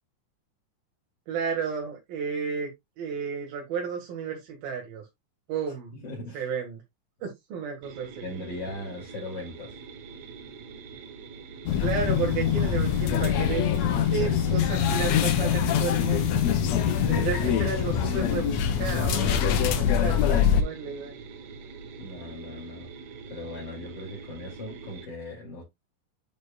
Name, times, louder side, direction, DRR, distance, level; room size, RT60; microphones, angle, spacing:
voice 1, 1.3-2.7 3.0-5.0 5.5-5.9 6.3-6.8 7.2-8.3 11.8-13.7 14.0-16.5 17.1-21.1, right 6 dB, 90° right, 3.8 m, -32 dB
voice 2, 5.9-6.5 8.2-9.8 14.1-14.4 16.6-17.9 22.0-22.9 23.3-25.6, left 2 dB, 30° left, 2.9 m, -39 dB
sound 1, 7.8-25.1, right 5 dB, 65° right, 2.0 m, -44 dB
sound 2, 11.7-20.6, left 8 dB, 70° left, 1.7 m, -24 dB
9.2 x 5.3 x 2.4 m
omnidirectional pair, 4.0 m